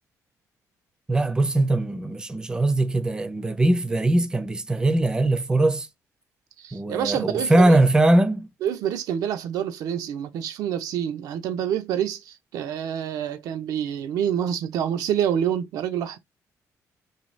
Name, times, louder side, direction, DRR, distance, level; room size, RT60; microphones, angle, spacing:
voice 1, 1.1-5.9 6.7-8.5, right 1 dB, 15° right, 0.4 m, -21 dB
voice 2, 6.6-7.8 8.6-16.2, right 9 dB, 85° right, 0.4 m, -27 dB
2.7 x 2.2 x 3.0 m
cardioid pair, 130°, 6 cm